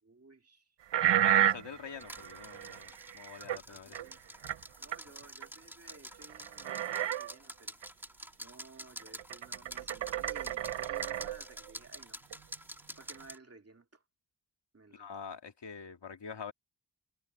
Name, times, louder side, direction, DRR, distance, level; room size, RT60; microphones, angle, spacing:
voice 1, 0.0-0.8 3.7-4.2 4.8-7.8 8.4-12.2 12.9-14.0 14.7-15.1, right 3 dB, 35° right, 2.1 m, -56 dB
sound 1, 0.9-3.6 3.9-4.1 4.4-4.6 4.9-5.0 5.4-5.5 5.9-6.0 6.2-7.3 7.8-7.9 9.0-11.7 12.3-12.4 13.1-13.2, right 11 dB, 90° right, 0.5 m, -31 dB
voice 2, 1.2-4.0 14.9-16.5, left 6 dB, 80° left, 2.2 m, -45 dB
sound 2, 2.0-13.4, equal, 5° right, 1.8 m, -48 dB
wide cardioid pair, 75°, 41 cm